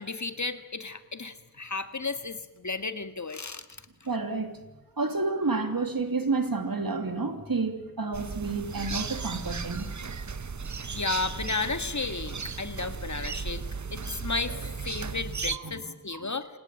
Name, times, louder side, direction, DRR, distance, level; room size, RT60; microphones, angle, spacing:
voice 1, 0.0-3.7 10.9-13.6 13.9-16.5, left 3 dB, 55° left, 10 dB, 1.8 m, -33 dB
voice 2, 4.0-4.6 5.0-9.9 15.5-16.3, right 3 dB, 80° right, 6 dB, 2.9 m, -30 dB
sound 1, 8.1-15.6, right 5 dB, 55° right, 0.9 m, -35 dB
27.0 x 18.0 x 9.0 m, 1.0 s
wide cardioid pair, 60°, 34 cm